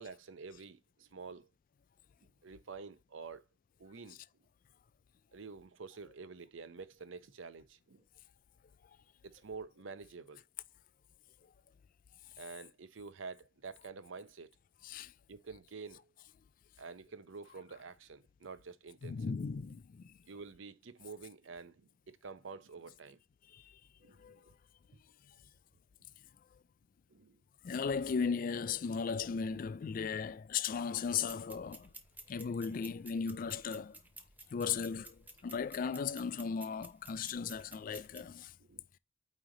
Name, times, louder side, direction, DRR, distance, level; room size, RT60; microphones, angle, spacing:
voice 1, 0.0-1.5 2.2-3.5 3.8-4.2 5.3-8.0 9.2-10.4 12.4-14.5 15.3-16.1 16.8-19.2 20.3-23.2 24.0-24.5 27.1-27.4 35.4-35.6 38.6-38.8, right 4 dB, 70° right, 0.7 m, -49 dB
voice 2, 19.0-20.2 23.5-23.8 24.2-24.4 27.6-31.9 32.3-34.0 34.5-38.5, left 6 dB, 45° left, 0.3 m, -36 dB
sound 1, 31.2-38.3, right 2 dB, 10° right, 0.8 m, -54 dB
8.9 x 3.2 x 3.8 m
head